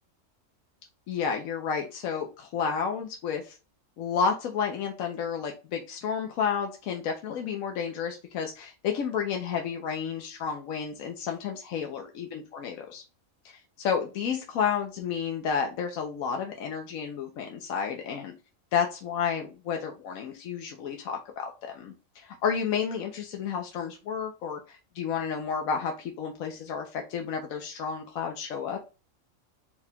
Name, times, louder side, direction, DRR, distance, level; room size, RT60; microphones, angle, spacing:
voice 1, 1.1-3.5 4.0-13.0 13.4-18.3 18.7-28.8, left 6 dB, 80° left, 2 dB, 1.1 m, -31 dB
4.6 x 2.2 x 3.5 m, 0.31 s
omnidirectional pair, 1.4 m